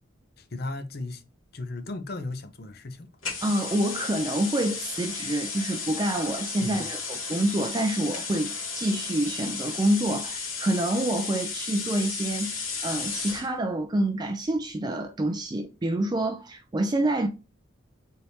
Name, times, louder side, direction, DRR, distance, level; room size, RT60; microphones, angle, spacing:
voice 1, 0.4-1.2 1.5-3.1 6.6-6.8, left 2 dB, 50° left, 0.6 m, -35 dB
sound 1, 3.2-13.5, left 5 dB, 85° left, 1.8 m, -34 dB
voice 2, 3.4-17.3, right 1 dB, 20° right, 0.3 m, -27 dB
4.2 x 3.5 x 2.7 m
head